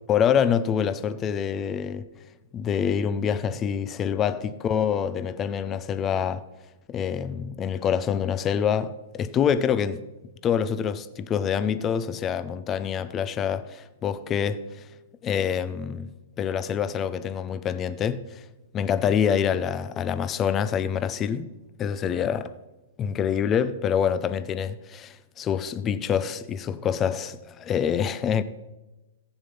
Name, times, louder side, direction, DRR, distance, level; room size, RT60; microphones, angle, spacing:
voice 1, 0.1-2.1 2.5-6.4 6.9-10.0 10.4-14.6 15.2-16.1 16.4-18.4 18.7-21.5 21.8-22.5 23.0-28.4, left 8 dB, 25° left, 0.6 m, -26 dB
15.0 x 7.1 x 5.5 m
hypercardioid pair, 125°, 0 cm